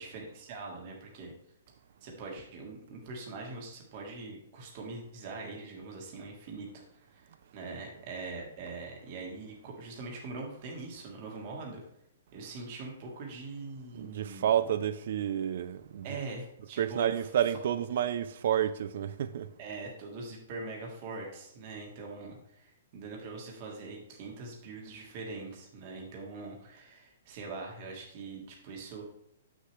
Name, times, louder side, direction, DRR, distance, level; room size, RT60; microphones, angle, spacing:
voice 1, 0.0-1.3 2.0-7.3 7.5-11.8 12.3-14.6 16.0-17.3 19.6-29.1, right 3 dB, 30° right, 1.5 m, -42 dB
voice 2, 13.9-16.2 16.6-19.5, right 10 dB, 50° right, 0.4 m, -30 dB
7.6 x 6.4 x 3.3 m
hypercardioid pair, 175°, 0 cm